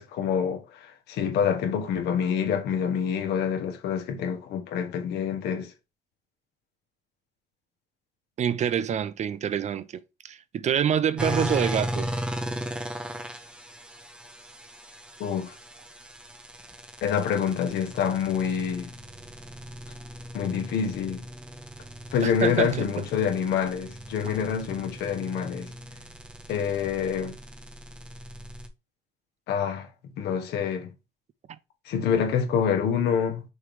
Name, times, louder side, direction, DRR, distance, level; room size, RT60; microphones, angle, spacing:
voice 1, 0.0-5.7 15.2-15.5 17.0-18.9 20.3-21.3 22.1-25.7 26.5-27.4 29.5-29.9 30.2-30.9 31.8-33.4, left 7 dB, 80° left, 1.6 m, -27 dB
voice 2, 8.4-12.1 22.2-23.0 24.2-24.3, right 9 dB, 45° right, 0.5 m, -27 dB
sound 1, 11.2-28.7, equal, 5° right, 1.0 m, -37 dB
6.4 x 3.1 x 5.0 m
cardioid pair, 110°, 17 cm